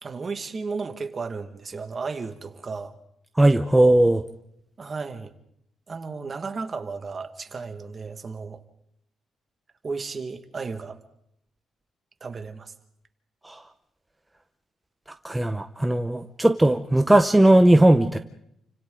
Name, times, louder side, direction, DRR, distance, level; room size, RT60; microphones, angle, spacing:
voice 1, 0.0-3.0 4.8-5.3 5.9-8.6 9.8-11.0 12.2-12.7, right 4 dB, 30° right, 7 dB, 1.7 m, -34 dB
voice 2, 3.4-4.2 13.4-13.6 15.2-18.2, right 1 dB, 10° right, 7 dB, 0.7 m, -18 dB
29.5 x 25.5 x 3.8 m, 0.75 s
cardioid pair, 135°, 0 cm